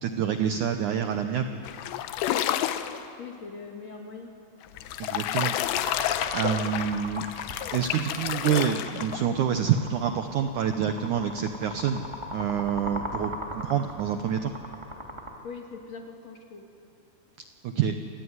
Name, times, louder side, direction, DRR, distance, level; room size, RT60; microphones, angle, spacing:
voice 1, 0.0-1.6 5.0-5.5 6.3-7.3 7.7-12.0 12.3-14.5 17.6-18.0, right 8 dB, 85° right, 7 dB, 1.7 m, -27 dB
sound 1, 1.6-3.0 4.6-9.4, left 12 dB, 85° left, 3.1 m, -30 dB
voice 2, 3.2-4.3 15.4-16.6, left 4 dB, 45° left, 1 dB, 3.2 m, -41 dB
sound 2, 5.8-15.3, equal, 10° right, 1.8 m, -38 dB
27.5 x 19.5 x 9.6 m, 2.6 s
omnidirectional pair, 4.9 m